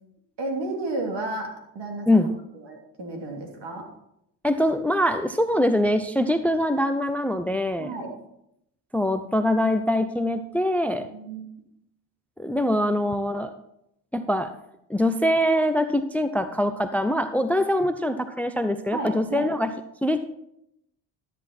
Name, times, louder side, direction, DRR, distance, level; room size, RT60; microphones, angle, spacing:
voice 1, 0.4-2.3 2.5-3.9 7.8-8.1 11.1-11.4 18.9-19.5, right 2 dB, 55° right, 2 dB, 3.0 m, -32 dB
voice 2, 4.4-7.9 8.9-11.1 12.4-13.5 14.1-14.5 14.9-19.7 20.0-20.2, left 1 dB, 5° left, 11 dB, 0.7 m, -23 dB
12.5 x 8.2 x 4.3 m, 0.78 s
supercardioid pair, 55°, 49 cm